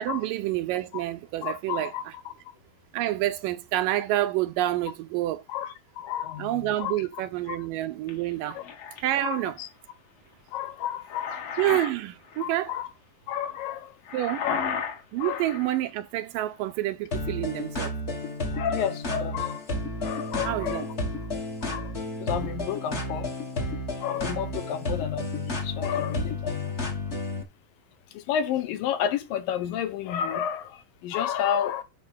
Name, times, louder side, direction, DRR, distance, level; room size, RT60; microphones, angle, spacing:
voice 1, 0.0-2.1 2.9-5.4 6.4-8.6 9.0-9.6 11.6-12.7 14.1-14.5 15.1-18.0 20.4-20.9, right 15 dB, 80° right, 2.3 m, -28 dB
voice 2, 1.4-2.0 5.5-7.0 7.5-7.6 8.5-8.6 9.2-9.7 10.5-11.4 12.4-12.9 13.3-13.9 14.4-14.7 15.2-15.4 18.5-19.6 20.0-20.9 21.7-21.9 22.2-23.3 24.0-26.8 28.1-31.8, left 9 dB, 80° left, 2.7 m, -31 dB
young woman snoring, 8.1-9.0 10.8-11.9 12.3-12.5 14.0-15.8, left 6 dB, 55° left, 2.0 m, -33 dB
sound 1, 17.1-27.4, left 2 dB, 35° left, 1.0 m, -32 dB
9.7 x 3.4 x 6.2 m
omnidirectional pair, 4.1 m